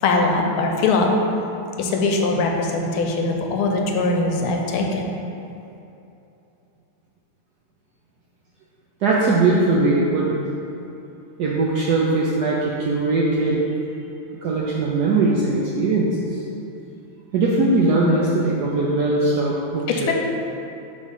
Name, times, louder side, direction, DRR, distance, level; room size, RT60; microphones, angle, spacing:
voice 1, 0.0-1.1 1.8-5.0 19.9-20.1, left 3 dB, 85° left, 2 dB, 1.5 m, -21 dB
voice 2, 9.0-10.4 11.4-13.6 14.4-16.2 17.3-20.1, right 2 dB, 75° right, -4 dB, 0.9 m, -20 dB
5.2 x 3.6 x 5.4 m, 2.8 s
omnidirectional pair, 2.3 m